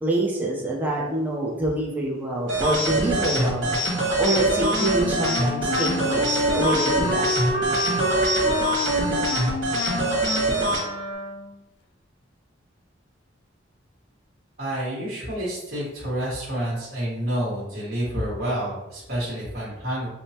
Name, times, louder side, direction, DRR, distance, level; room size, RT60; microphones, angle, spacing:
voice 1, 0.0-3.7 4.2-7.9, right 1 dB, 10° right, -4 dB, 0.6 m, -26 dB
sound 1, 2.5-10.8, right 1 dB, 70° right, 1.2 m, -24 dB
Wind instrument woodwind instrument, 4.2-11.6, left 2 dB, 60° left, 0.5 m, -29 dB
voice 2, 14.6-20.1, right 1 dB, 50° right, -8 dB, 1.3 m, -29 dB
5.0 x 2.0 x 2.8 m, 0.94 s
head